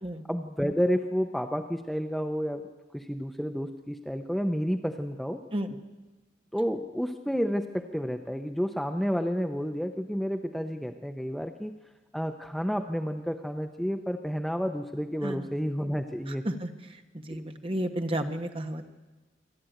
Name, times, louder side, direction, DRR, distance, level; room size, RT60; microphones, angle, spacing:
voice 1, 0.3-2.7 2.9-5.4 6.5-11.7 12.1-16.5 17.3-17.4, equal, ahead, 6 dB, 0.7 m, -30 dB
voice 2, 15.2-15.5 16.3-18.8, right 1 dB, 30° right, 6 dB, 1.3 m, -33 dB
26.5 x 12.0 x 9.1 m, 1.3 s
head